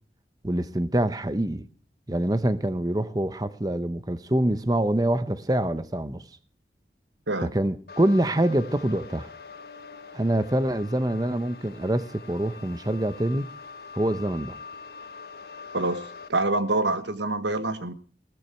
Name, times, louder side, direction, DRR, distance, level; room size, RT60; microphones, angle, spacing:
voice 1, 0.4-1.7 2.1-6.2 7.4-9.3 10.1-13.5 13.9-14.6, right 1 dB, 20° right, 0.8 m, -25 dB
sound 1, 7.9-16.3, left 5 dB, 60° left, 1.5 m, -44 dB
voice 2, 16.3-17.9, right 2 dB, 85° right, 1.4 m, -26 dB
17.0 x 13.5 x 4.4 m
head